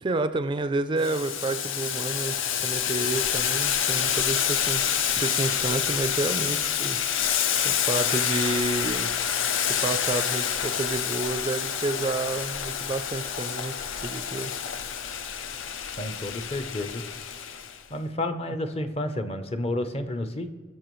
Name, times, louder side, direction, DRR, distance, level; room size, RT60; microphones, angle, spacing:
voice 1, 0.0-2.3 2.6-7.0 7.6-9.1 9.8-13.7 14.0-14.5, right 2 dB, 25° right, 11 dB, 0.4 m, -30 dB
Boiling, 1.0-17.8, left 8 dB, 80° left, 0.6 m, -28 dB
voice 2, 16.0-17.0 17.9-20.5, left 1 dB, 30° left, 9 dB, 0.6 m, -30 dB
17.5 x 6.7 x 3.1 m, 1.5 s
head